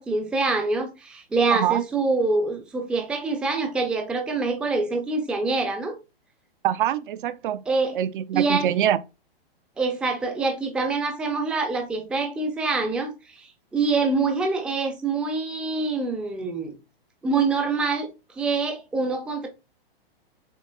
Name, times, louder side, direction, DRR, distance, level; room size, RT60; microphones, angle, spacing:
voice 1, 0.0-5.9 7.7-8.0 8.3-8.7 9.8-16.7 17.2-19.5, right 3 dB, 5° right, 0.4 m, -25 dB
voice 2, 1.5-1.8 6.6-7.6 7.9-9.0, right 11 dB, 55° right, 0.5 m, -24 dB
6.7 x 2.4 x 2.2 m
hypercardioid pair, 135°, 30 cm